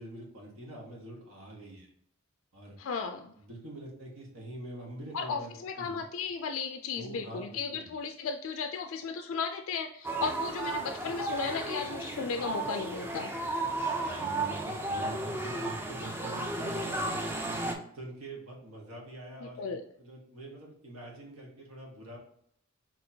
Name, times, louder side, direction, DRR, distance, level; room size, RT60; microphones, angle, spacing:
voice 1, 0.0-1.9 2.5-2.8 3.4-6.0 6.9-7.9 10.1-10.3 14.0-17.4 17.9-22.2, right 1 dB, 85° right, -2 dB, 1.3 m, -45 dB
voice 2, 2.8-3.3 5.1-13.3 19.4-19.8, left 5 dB, 65° left, 5 dB, 0.3 m, -35 dB
sound 1, 10.0-17.7, right 2 dB, 10° right, 0.4 m, -34 dB
4.2 x 2.9 x 2.7 m, 0.67 s
head